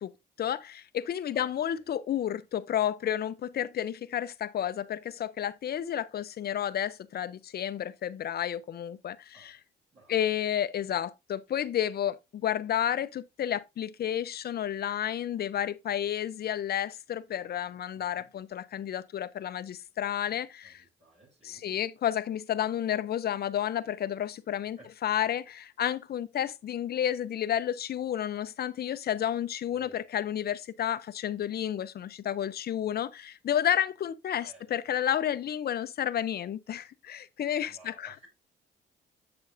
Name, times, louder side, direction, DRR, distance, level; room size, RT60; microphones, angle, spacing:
voice 1, 0.4-9.6 10.1-20.8 21.4-38.1, left 10 dB, 50° left, 0.6 m, -31 dB
voice 2, 1.3-1.8 9.3-9.6 9.9-10.3 17.9-18.3 20.6-21.7 24.8-24.9 29.7-30.0 34.4-35.0 37.6-38.3, right 2 dB, 35° right, 5.3 m, -58 dB
7.7 x 6.9 x 2.6 m
cardioid pair, 90°, 20 cm